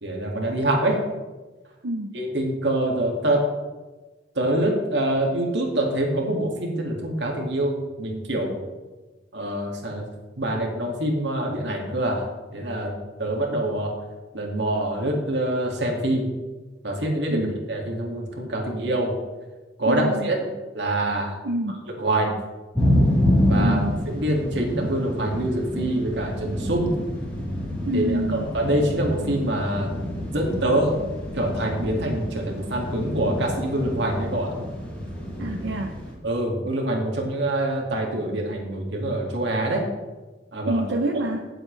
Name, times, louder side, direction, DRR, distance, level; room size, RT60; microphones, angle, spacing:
voice 1, 0.0-1.0 2.1-3.4 4.4-8.6 9.3-10.0 10.4-12.9 13.2-13.9 14.3-16.3 16.8-19.2 19.8-20.5 20.7-21.3 22.0-22.3 23.5-23.8 24.1-26.9 27.9-29.9 30.3-31.0 31.3-34.5 35.4-35.5 36.2-39.8 40.5-40.8 41.1-41.3, right 1 dB, 70° right, 0 dB, 2.3 m, -25 dB
voice 2, 19.8-20.3 21.4-21.8 23.6-24.0 27.8-28.5 35.4-36.0 40.6-41.5, right 1 dB, 90° right, 3 dB, 0.7 m, -27 dB
sound 1, 22.7-36.1, left 1 dB, 10° left, 3.6 m, -27 dB
16.5 x 7.8 x 3.3 m, 1.2 s
head